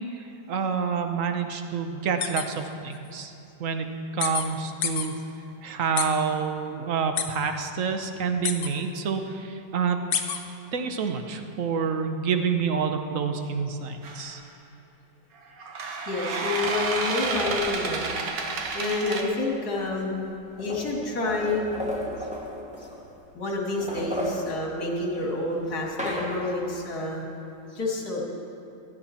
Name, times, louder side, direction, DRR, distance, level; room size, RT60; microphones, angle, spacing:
voice 1, 0.0-3.3 3.6-3.9 4.1-5.1 5.6-10.0 10.7-14.4, right 6 dB, 55° right, 6 dB, 1.2 m, -28 dB
sound 1, 2.2-2.4 2.9-3.0 4.2-4.4 4.8-5.1 6.0-6.1 7.2-7.3 8.4-8.7 10.1-10.4, left 8 dB, 80° left, 1.6 m, -26 dB
sound 2, 14.0-14.3 15.6-19.2, right 4 dB, 75° right, 1.8 m, -30 dB
voice 2, 15.9-18.1 18.7-20.3 20.6-21.7 22.2-22.3 22.8-22.9 23.3-27.2 27.7-28.2, left 2 dB, 60° left, -2 dB, 2.8 m, -29 dB
sound 3, 16.6-18.8 19.8-19.9 20.1-23.3 23.6-26.8, equal, 5° right, 1.3 m, -36 dB
16.5 x 12.0 x 4.3 m, 2.9 s
omnidirectional pair, 1.9 m